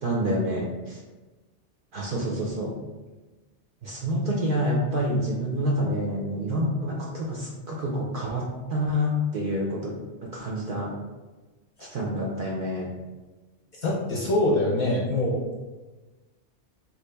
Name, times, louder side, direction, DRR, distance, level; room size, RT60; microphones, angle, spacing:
voice 1, 0.0-1.0 1.9-2.7 3.8-10.0 10.2-10.9 11.8-12.9, equal, 60° right, -3 dB, 0.6 m, -28 dB
voice 2, 13.8-15.5, left 1 dB, 50° left, -4 dB, 0.7 m, -24 dB
3.0 x 2.5 x 3.3 m, 1.2 s
omnidirectional pair, 1.2 m